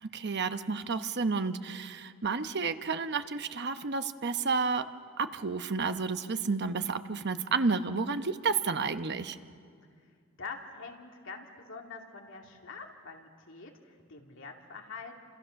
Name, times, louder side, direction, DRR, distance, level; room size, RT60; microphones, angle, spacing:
voice 1, 0.0-4.8 5.2-9.4, right 4 dB, 55° right, 9 dB, 0.9 m, -31 dB
voice 2, 10.4-15.3, left 4 dB, 65° left, 1 dB, 2.7 m, -45 dB
29.0 x 26.5 x 6.5 m, 2.2 s
head